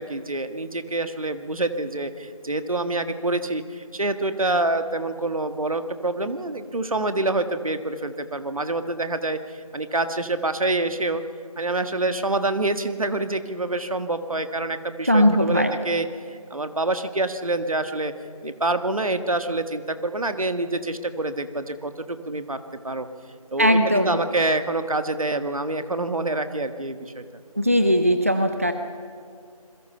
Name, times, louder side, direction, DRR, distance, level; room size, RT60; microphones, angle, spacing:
voice 1, 0.0-11.2 11.6-18.1 18.4-22.6 22.8-23.1 23.5-27.2, right 2 dB, 65° right, 9 dB, 1.8 m, -26 dB
voice 2, 15.0-15.7 23.6-24.2 27.6-28.7, equal, 25° right, 7 dB, 0.6 m, -19 dB
28.0 x 22.0 x 5.7 m, 2.3 s
figure-of-eight pair, 175°, 19 cm